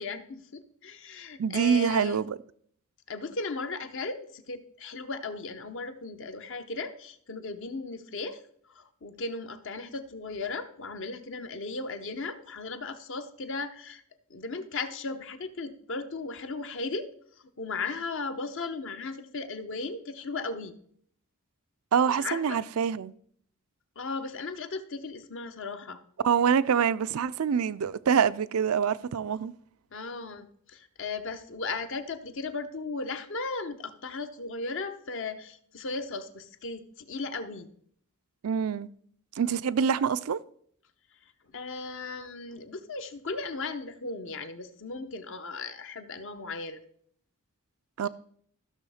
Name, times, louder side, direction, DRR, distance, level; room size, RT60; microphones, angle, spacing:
voice 1, 0.0-2.2 3.1-8.4 8.7-14.0 14.3-17.1 17.6-20.7 22.1-22.6 24.0-26.0 29.9-37.7 41.5-46.8, left 3 dB, 60° left, 0.9 m, -36 dB
voice 2, 1.4-2.4 21.9-23.1 26.2-29.5 38.4-38.9 39.4-40.4 48.0-48.1, right 7 dB, 80° right, 0.5 m, -25 dB
14.5 x 6.3 x 4.9 m
head